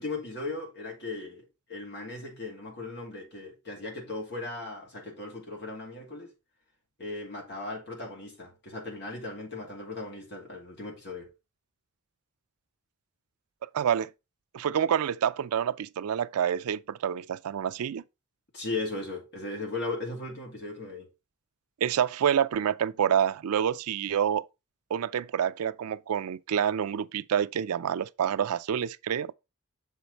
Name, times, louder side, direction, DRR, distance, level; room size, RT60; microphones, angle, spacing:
voice 1, 0.0-6.3 7.0-11.3 18.5-21.1, left 2 dB, 50° left, 2.6 m, -37 dB
voice 2, 13.6-14.1 14.5-18.0 21.8-24.5 24.9-29.3, right 8 dB, 90° right, 0.4 m, -27 dB
7.0 x 4.6 x 4.0 m
head